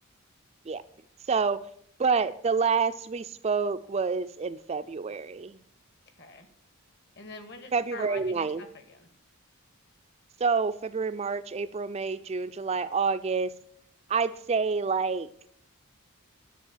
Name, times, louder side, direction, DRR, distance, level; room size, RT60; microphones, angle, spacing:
voice 1, 1.3-1.7 2.0-5.6 7.7-8.6 10.4-13.5 14.1-15.3, right 5 dB, 30° right, 11 dB, 0.3 m, -28 dB
voice 2, 7.1-9.1, left 3 dB, 50° left, 8 dB, 1.5 m, -44 dB
11.0 x 6.8 x 7.2 m, 0.67 s
head